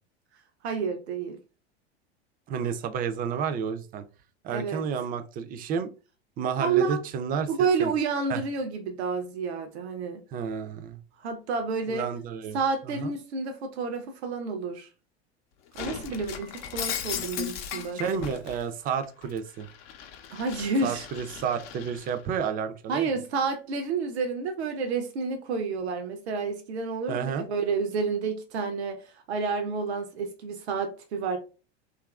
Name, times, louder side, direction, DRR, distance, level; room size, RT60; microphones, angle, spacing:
voice 1, 0.6-1.4 4.5-4.8 6.6-7.0 7.5-10.2 11.2-12.1 12.5-14.9 15.7-18.0 20.3-21.0 22.9-29.0 29.3-31.4, right 4 dB, 80° right, 0.6 m, -29 dB
voice 2, 2.5-4.0 4.4-5.9 6.4-7.5 7.8-7.9 8.3-8.4 10.3-11.0 11.9-12.6 12.9-13.1 17.9-19.7 20.8-23.1 27.1-27.5, right 7 dB, 30° right, 0.4 m, -31 dB
Shatter, 15.7-18.6 19.0-22.2, left 9 dB, 65° left, 0.6 m, -37 dB
2.8 x 2.4 x 2.3 m
hypercardioid pair, 90°, 32 cm